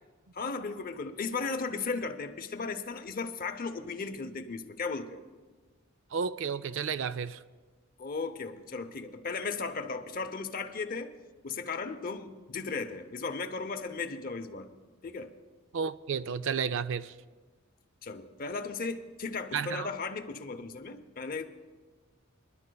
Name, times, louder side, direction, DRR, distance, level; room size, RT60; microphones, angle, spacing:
voice 1, 0.3-5.2 8.0-11.1 11.4-14.7 15.0-15.3 18.0-21.5, left 4 dB, 45° left, 0.7 m, -36 dB
voice 2, 6.1-7.4 15.7-17.1 19.5-19.9, right 6 dB, 65° right, 0.4 m, -32 dB
27.5 x 11.0 x 2.3 m
head